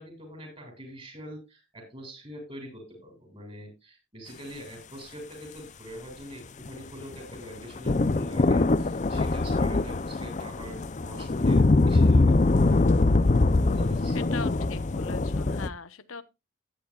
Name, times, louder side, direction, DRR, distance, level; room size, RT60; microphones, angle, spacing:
voice 1, 0.0-12.3 13.6-14.3, equal, 25° right, 3 dB, 7.4 m, -44 dB
sound 1, 6.7-15.7, left 2 dB, 35° left, 0.5 m, -23 dB
voice 2, 14.1-16.2, left 4 dB, 80° left, 12 dB, 1.0 m, -40 dB
15.5 x 10.5 x 2.4 m, 0.24 s
head